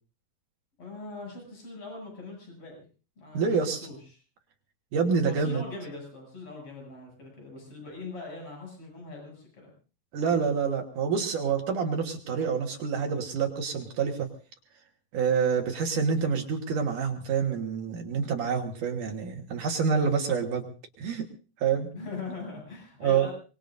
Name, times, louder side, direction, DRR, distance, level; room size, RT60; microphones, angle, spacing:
voice 1, 0.8-2.9 3.2-4.2 5.2-9.7 21.9-23.3, left 3 dB, 35° left, 1 dB, 8.4 m, -41 dB
voice 2, 3.3-3.9 4.9-5.6 10.1-14.3 15.1-20.7 21.0-21.3 21.6-21.9 23.0-23.3, right 6 dB, 60° right, 4 dB, 2.8 m, -27 dB
25.0 x 21.5 x 2.6 m, 0.36 s
omnidirectional pair, 4.4 m